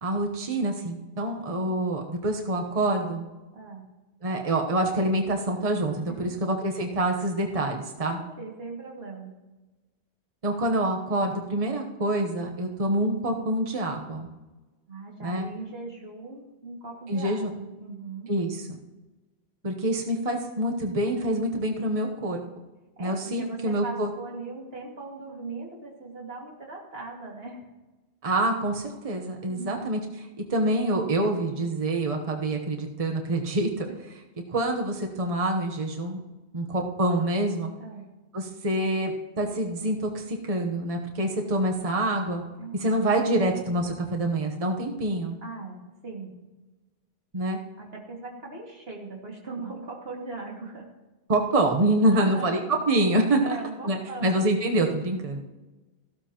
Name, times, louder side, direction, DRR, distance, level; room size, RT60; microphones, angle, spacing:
voice 1, 0.0-3.3 4.2-8.2 10.4-14.3 15.2-15.5 17.1-17.5 18.3-18.8 19.6-22.4 23.0-24.1 28.2-30.0 30.5-33.9 34.5-36.2 36.5-37.7 38.3-42.4 42.7-45.4 47.3-47.6 51.3-52.6 52.9-53.6 53.8-55.4, right 1 dB, 35° right, 2 dB, 1.1 m, -26 dB
voice 2, 3.5-3.8 6.1-6.4 8.1-9.3 14.9-18.3 23.0-27.6 29.5-30.0 33.9-34.0 37.8-38.1 42.6-42.9 45.4-46.3 47.8-50.9 52.1-52.6 53.4-54.5, right 3 dB, 70° right, -1 dB, 2.4 m, -39 dB
15.0 x 12.5 x 3.0 m, 1.1 s
omnidirectional pair, 1.1 m